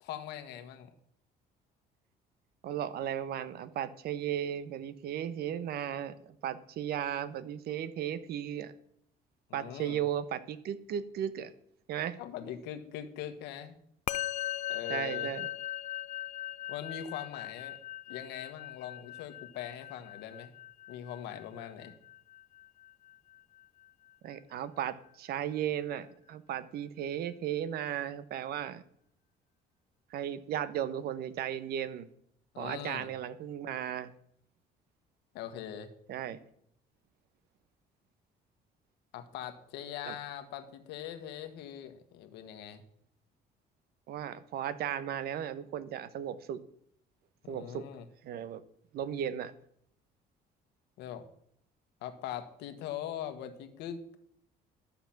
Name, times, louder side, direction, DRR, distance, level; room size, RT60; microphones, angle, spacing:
voice 1, 0.0-0.9 9.5-10.0 12.2-13.7 14.7-15.3 16.7-17.8 18.1-20.5 20.9-21.9 32.5-33.1 35.3-35.9 39.1-42.8 47.4-48.0 51.0-51.2 52.0-54.2, left 10 dB, 90° left, 8 dB, 1.3 m, -41 dB
voice 2, 2.6-8.7 9.5-11.5 11.9-12.2 14.9-15.5 24.2-28.8 30.1-32.1 32.6-34.1 36.1-36.4 40.1-40.2 44.1-46.6 47.5-47.8 48.2-48.6 48.9-49.5, right 10 dB, 70° right, 15 dB, 0.9 m, -35 dB
Musical instrument, 14.1-23.6, left 12 dB, 45° left, 0.4 m, -40 dB
12.0 x 7.1 x 5.9 m, 0.70 s
cardioid pair, 110°, 17 cm